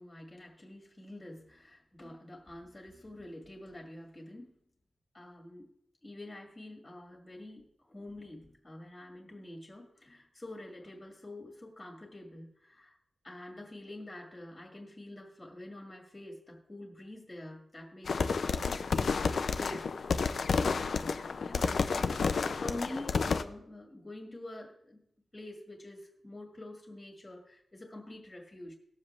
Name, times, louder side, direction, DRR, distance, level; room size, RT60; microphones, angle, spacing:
voice 1, 0.0-4.5 5.1-5.7 6.0-13.0 13.2-19.2 19.5-20.2 20.8-25.0 25.3-28.7, left 1 dB, 15° left, 1 dB, 1.9 m, -46 dB
sound 1, 18.1-23.4, left 5 dB, 55° left, 0.5 m, -30 dB
19.0 x 7.3 x 3.2 m, 0.74 s
wide cardioid pair, 170°, 0 cm